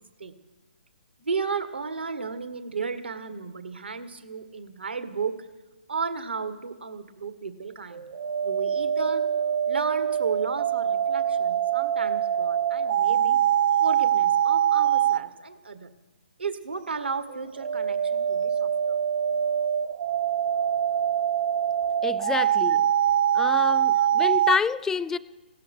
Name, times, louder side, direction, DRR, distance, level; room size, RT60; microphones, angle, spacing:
voice 1, 1.2-5.3 5.9-8.0 8.4-9.2 9.7-13.4 13.8-15.9 16.4-19.0 23.9-24.1, right 5 dB, 85° right, 1.8 m, -33 dB
sound 1, 7.9-15.3 17.3-24.6, right 9 dB, 60° right, 1.3 m, -24 dB
voice 2, 22.0-22.9 23.3-25.2, left 6 dB, 10° left, 0.4 m, -28 dB
17.0 x 13.0 x 6.7 m
hypercardioid pair, 140°, 6 cm